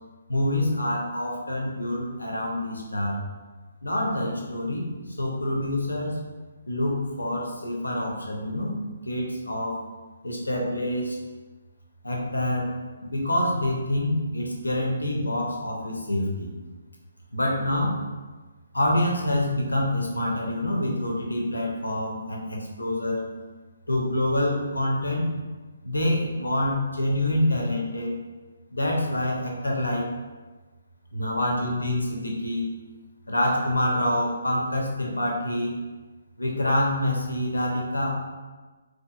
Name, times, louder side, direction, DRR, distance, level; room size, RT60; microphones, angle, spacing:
voice 1, 0.3-3.2 3.8-4.9 5.2-6.2 6.7-8.8 9.1-9.8 10.2-11.2 12.0-12.7 13.0-16.5 17.3-17.9 18.7-23.2 23.9-25.3 25.8-28.1 28.7-30.1 31.1-32.7 33.3-35.8 36.4-38.1, left 1 dB, 75° left, -1 dB, 0.6 m, -26 dB
2.8 x 2.4 x 2.3 m, 1.3 s
figure-of-eight pair, 135°, 0 cm